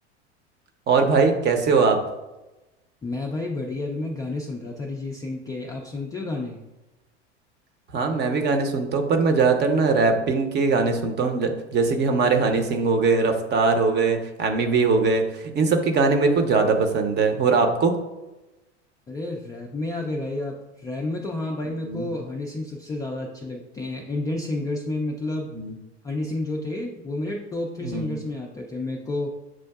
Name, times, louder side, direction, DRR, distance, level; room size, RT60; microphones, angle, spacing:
voice 1, 0.9-2.0 7.9-17.9 21.8-22.1 25.5-25.7 27.8-28.2, right 4 dB, 30° right, 5 dB, 0.7 m, -21 dB
voice 2, 3.0-6.6 19.1-25.5 26.0-29.3, left 2 dB, 10° left, -1 dB, 0.3 m, -30 dB
7.3 x 2.5 x 2.3 m, 1.0 s
hypercardioid pair, 85°, 35 cm